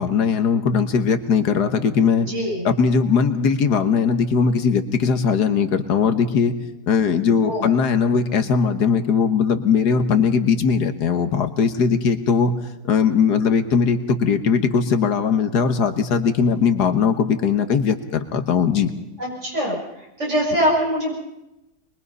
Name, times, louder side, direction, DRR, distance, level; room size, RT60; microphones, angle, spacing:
voice 1, 0.0-2.3 2.6-6.6 6.9-12.5 12.8-18.9, left 6 dB, 85° left, 8 dB, 1.9 m, -19 dB
voice 2, 2.3-2.6 7.4-7.7 19.2-19.8 20.2-21.1, equal, 45° right, -3 dB, 7.8 m, -22 dB
23.5 x 22.0 x 5.5 m, 0.94 s
omnidirectional pair, 1.7 m